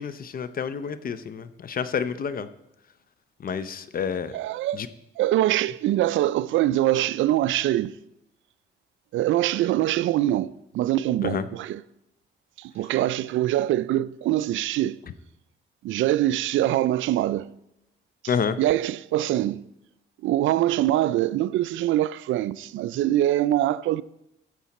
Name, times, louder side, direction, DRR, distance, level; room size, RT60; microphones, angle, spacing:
voice 1, 0.0-2.5 3.4-4.3 4.7-4.9 11.2-11.5 18.3-18.6, left 6 dB, 45° left, 0.7 m, -29 dB
voice 2, 4.3-4.9 5.2-7.9 9.1-11.8 12.6-15.0 15.8-17.5 18.6-19.6 20.2-24.0, right 14 dB, 75° right, 0.4 m, -23 dB
14.5 x 7.2 x 4.2 m
cardioid pair, 90°, 20 cm